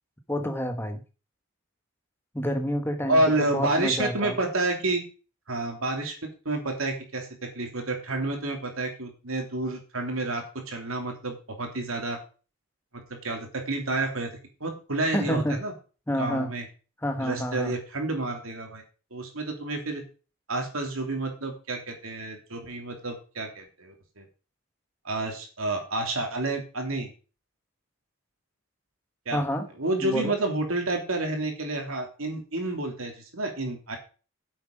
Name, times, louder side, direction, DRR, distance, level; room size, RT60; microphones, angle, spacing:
voice 1, 0.3-1.0 2.3-4.4 15.1-15.6 16.1-16.5 17.0-17.7 29.3-29.7 30.0-30.3, equal, 10° left, 6 dB, 1.3 m, -29 dB
voice 2, 3.1-5.0 5.5-6.1 6.4-12.2 12.9-14.3 14.6-15.7 16.2-16.6 17.2-18.8 19.1-20.0 20.5-24.3 25.0-27.1 29.3-29.4 29.8-34.0, right 2 dB, 80° right, 3 dB, 2.9 m, -29 dB
9.3 x 7.9 x 5.2 m, 0.35 s
head